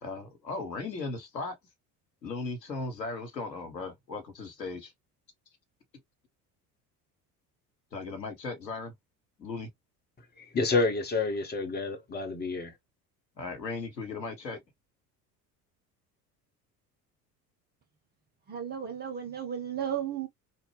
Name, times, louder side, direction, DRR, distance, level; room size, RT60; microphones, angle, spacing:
voice 1, 0.0-1.6 2.2-4.9 7.9-8.9 9.4-9.7 13.4-14.6, left 3 dB, 85° left, 0.9 m, -37 dB
voice 2, 10.4-12.7, left 3 dB, 20° left, 0.9 m, -29 dB
voice 3, 18.5-20.3, right 9 dB, 20° right, 0.4 m, -34 dB
2.8 x 2.1 x 3.1 m
figure-of-eight pair, 60°, 49 cm